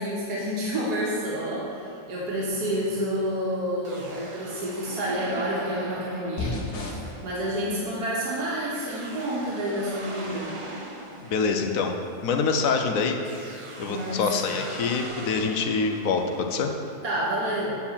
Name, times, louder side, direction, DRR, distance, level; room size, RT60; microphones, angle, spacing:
voice 1, 0.0-10.5 13.9-14.6 17.0-17.7, equal, 80° right, -6 dB, 1.8 m, -29 dB
sound 1, 2.5-12.7 13.2-17.0, right 2 dB, 35° right, 0.5 m, -41 dB
sound 2, 6.4-15.1, left 3 dB, 80° left, 1.6 m, -42 dB
voice 2, 11.2-12.0 12.2-13.2 13.8-16.7, left 5 dB, 65° left, 4 dB, 1.1 m, -25 dB
8.1 x 4.7 x 7.2 m, 3.0 s
omnidirectional pair, 1.7 m